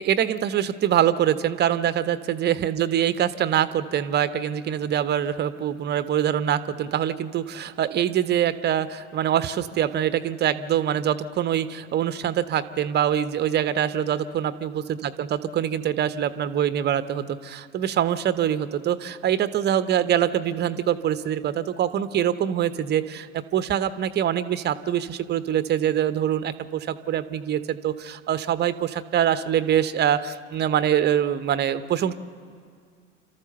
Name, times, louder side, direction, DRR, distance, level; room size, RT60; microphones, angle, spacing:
voice 1, 0.0-32.1, right 10 dB, 25° right, 13 dB, 0.9 m, -24 dB
29.5 x 13.5 x 6.7 m, 2.1 s
figure-of-eight pair, 75°, 39 cm